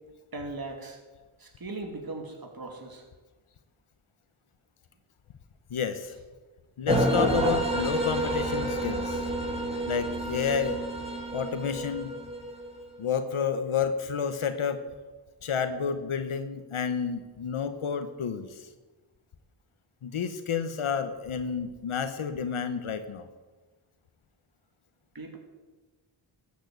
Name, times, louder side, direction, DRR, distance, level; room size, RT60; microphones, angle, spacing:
voice 1, 0.3-1.0 1.4-3.0 25.1-25.4, right 2 dB, 45° right, 3 dB, 2.8 m, -38 dB
voice 2, 5.7-6.2 6.8-9.3 9.9-10.8 11.3-12.1 13.0-14.8 15.4-18.7 20.0-23.3, left 7 dB, 75° left, 9 dB, 1.2 m, -30 dB
sound 1, 6.9-12.9, right 1 dB, 10° right, 3.8 m, -29 dB
14.0 x 8.7 x 8.1 m, 1.3 s
cardioid pair, 45°, 50 cm